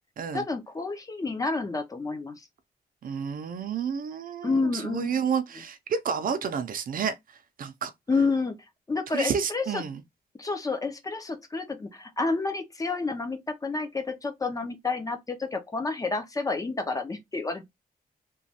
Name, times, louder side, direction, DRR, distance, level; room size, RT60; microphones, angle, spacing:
voice 1, 0.3-2.4 4.4-5.2 8.1-8.6 8.9-9.8 10.4-17.6, left 3 dB, 20° left, 0.4 m, -29 dB
voice 2, 3.0-7.1 7.6-7.9 9.1-10.0, right 7 dB, 60° right, 0.5 m, -30 dB
3.0 x 2.2 x 2.7 m
wide cardioid pair, 175°, 16 cm